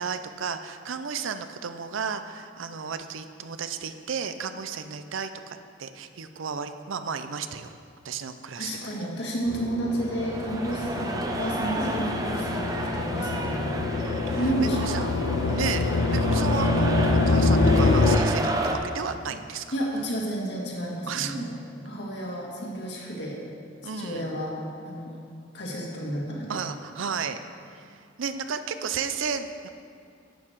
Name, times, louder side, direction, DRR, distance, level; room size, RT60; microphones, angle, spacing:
voice 1, 0.0-7.7 8.0-8.7 10.7-10.9 14.0-17.0 17.3-19.6 21.1-21.5 23.8-24.3 26.5-27.4 27.7-29.7, right 6 dB, 85° right, 10 dB, 0.6 m, -33 dB
voice 2, 8.6-13.8 14.4-15.5 19.7-21.6 21.8-23.4 24.0-24.6 24.8-25.1 25.5-26.6, right 1 dB, 60° left, -2 dB, 2.0 m, -31 dB
sound 1, 9.5-18.2, left 3 dB, 75° left, 0.5 m, -25 dB
sound 2, 9.8-18.7, right 2 dB, 20° right, 0.6 m, -32 dB
11.5 x 8.8 x 4.7 m, 2.3 s
head